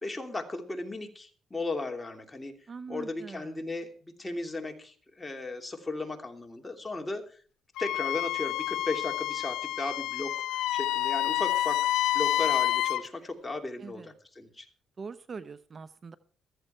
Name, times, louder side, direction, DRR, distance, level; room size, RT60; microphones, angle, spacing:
voice 1, 0.0-2.5 2.9-7.4 7.8-10.3 10.7-11.8 12.1-14.7, left 3 dB, 15° left, 4 dB, 2.9 m, -36 dB
voice 2, 2.7-3.6 13.8-14.1 15.0-16.2, right 5 dB, 40° right, 14 dB, 0.7 m, -43 dB
Wind instrument woodwind instrument, 7.8-13.0, left 14 dB, 90° left, 0.6 m, -28 dB
15.0 x 14.0 x 4.5 m, 0.42 s
cardioid pair, 90°, 0 cm